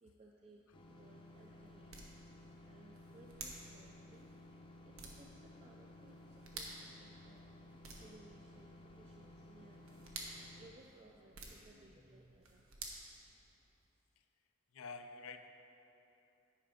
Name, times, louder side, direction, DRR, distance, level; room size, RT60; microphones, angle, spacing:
voice 1, 0.0-1.9 2.6-4.3 4.8-7.5 7.9-9.9 10.6-12.7, right 2 dB, 30° right, -1 dB, 0.4 m, -62 dB
sound 1, 0.7-10.7, left 1 dB, 25° left, 0.6 m, -57 dB
sound 2, 0.7-13.9, right 3 dB, 85° right, 1.1 m, -54 dB
voice 2, 14.7-15.5, left 4 dB, 85° left, 7 dB, 0.5 m, -48 dB
10.5 x 5.0 x 5.0 m, 3.0 s
head